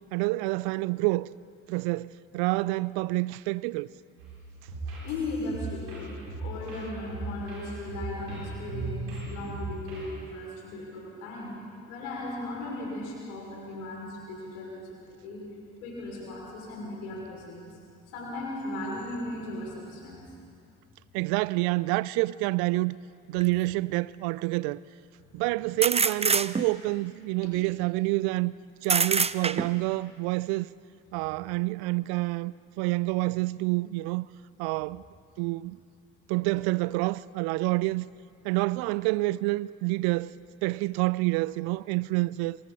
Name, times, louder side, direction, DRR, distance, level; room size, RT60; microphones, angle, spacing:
voice 1, 0.1-1.3 1.7-3.9 21.1-23.0 23.3-24.8 25.3-28.5 28.8-30.7 31.1-34.3 34.6-35.0 35.4-35.8 36.3-38.1 38.4-40.3 40.6-42.6, right 22 dB, 65° right, 0.5 m, -28 dB
sound 1, 4.2-10.2, right 2 dB, 80° right, 7.4 m, -37 dB
voice 2, 5.0-11.6 11.9-15.5 15.8-17.7 18.1-20.3 25.2-25.4, left 2 dB, 80° left, 5.8 m, -37 dB
sound 2, 23.4-23.5 25.8-26.9 28.8-29.9, right 4 dB, 15° right, 0.7 m, -25 dB
28.0 x 27.5 x 4.1 m
figure-of-eight pair, 50°, 41 cm